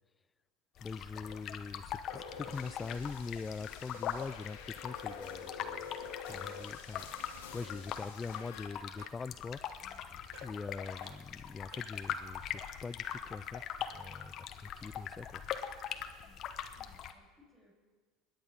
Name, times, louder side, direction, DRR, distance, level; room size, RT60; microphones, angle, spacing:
sound 1, 0.8-17.1, left 9 dB, 50° left, 1.0 m, -42 dB
voice 1, 0.8-7.1 7.5-10.0 10.4-15.4, left 4 dB, 20° left, 0.3 m, -43 dB
sound 2, 2.1-8.7, left 6 dB, 85° left, 1.8 m, -48 dB
sound 3, 6.3-6.6 7.0-7.2 7.5-7.7 8.3-8.7 9.0-9.2 9.7-10.1 10.3-10.7 11.0-11.2 11.7-12.1 12.7-12.8, right 12 dB, 75° right, 0.7 m, -57 dB
voice 2, 9.8-10.2 16.2-16.4 16.7-17.7, left 2 dB, 5° left, 6.2 m, -65 dB
21.0 x 9.6 x 5.2 m
supercardioid pair, 100°, 0 cm